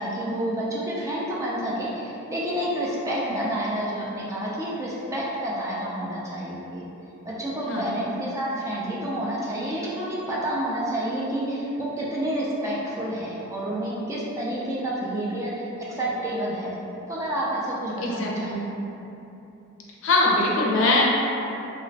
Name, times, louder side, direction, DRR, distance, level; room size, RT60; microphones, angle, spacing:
voice 1, 0.0-6.8 7.2-16.7 17.1-18.6, right 1 dB, 15° right, -6 dB, 0.5 m, -29 dB
voice 2, 18.0-18.6 20.0-21.0, left 2 dB, 65° left, -3 dB, 0.5 m, -22 dB
3.0 x 2.9 x 2.7 m, 2.8 s
head